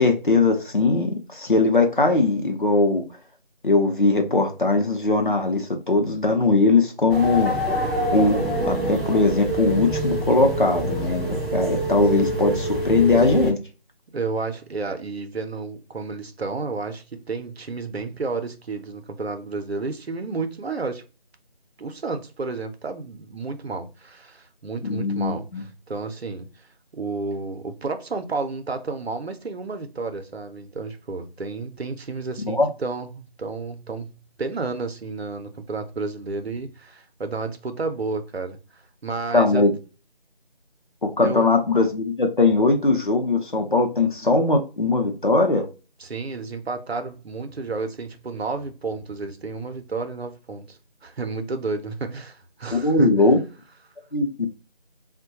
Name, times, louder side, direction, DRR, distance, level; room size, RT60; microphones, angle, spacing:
voice 1, 0.0-3.0 3.6-7.6 8.1-8.4 8.7-13.6 24.8-25.6 32.4-32.7 39.3-39.7 41.0-45.6 52.7-53.4 54.1-54.5, left 3 dB, 55° left, 0.7 m, -20 dB
sound 1, 7.1-13.5, right 1 dB, ahead, 0.5 m, -25 dB
voice 2, 14.1-21.0 21.8-26.5 26.9-39.7 41.2-41.5 46.0-53.2, right 3 dB, 80° right, 0.6 m, -31 dB
3.5 x 2.2 x 2.7 m
figure-of-eight pair, 175°, 31 cm